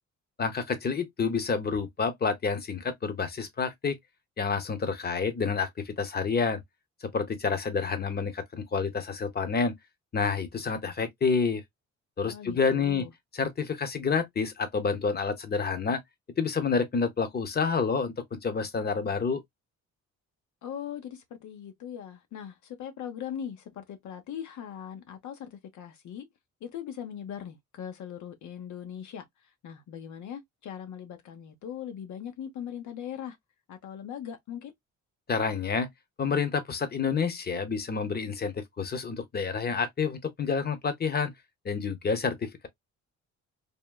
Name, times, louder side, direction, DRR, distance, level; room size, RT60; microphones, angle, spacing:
voice 1, 0.4-4.0 4.4-6.6 7.1-9.8 10.1-11.6 12.2-13.0 13.3-16.0 16.4-19.4 35.3-35.9 36.2-41.3 41.6-42.7, left 5 dB, 35° left, 0.8 m, -28 dB
voice 2, 12.3-13.1 20.6-26.3 26.6-33.4 33.7-34.7, left 9 dB, 75° left, 0.9 m, -40 dB
3.5 x 2.2 x 2.2 m
cardioid pair, 90°, 30 cm